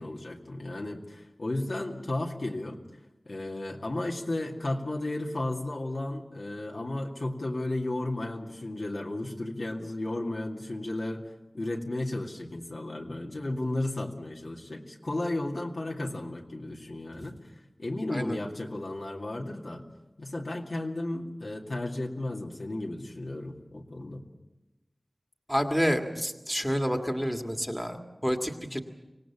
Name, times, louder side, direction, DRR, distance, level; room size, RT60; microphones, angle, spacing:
voice 1, 0.0-2.8 3.3-11.2 11.5-17.4 17.8-19.9 20.2-24.2, left 2 dB, 75° left, 0 dB, 2.2 m, -34 dB
voice 2, 25.5-28.8, equal, 5° left, 4 dB, 1.9 m, -29 dB
25.0 x 18.0 x 7.4 m, 1.0 s
wide cardioid pair, 40°, 0 cm